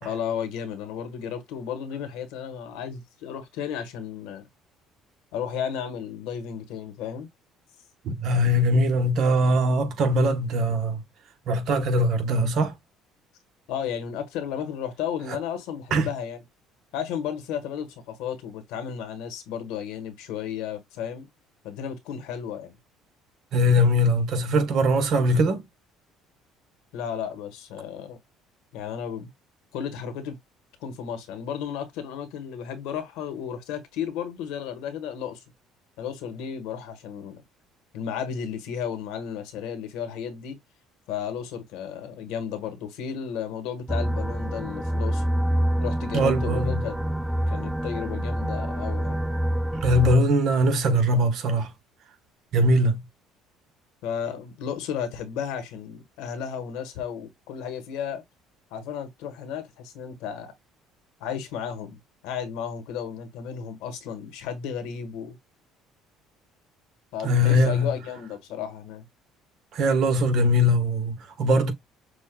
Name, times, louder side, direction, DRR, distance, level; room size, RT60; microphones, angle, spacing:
voice 1, 0.0-4.5 5.3-7.3 13.7-16.4 16.9-21.3 21.6-22.7 26.9-28.2 28.7-29.3 29.7-30.4 30.8-35.4 36.0-37.4 37.9-40.6 41.1-45.2 45.8-47.0 47.5-49.2 54.0-58.2 58.7-60.5 61.2-65.4 67.1-69.1, left 8 dB, 85° left, 1.3 m, -33 dB
voice 2, 8.0-11.0 11.5-12.7 15.9-16.1 23.5-25.7 46.1-46.9 49.8-51.7 52.5-53.0 67.2-68.0 69.7-71.7, equal, 55° right, 1.2 m, -21 dB
sound 1, 43.9-50.2, right 1 dB, 5° right, 0.3 m, -26 dB
6.3 x 2.4 x 2.2 m
cardioid pair, 130°, 0 cm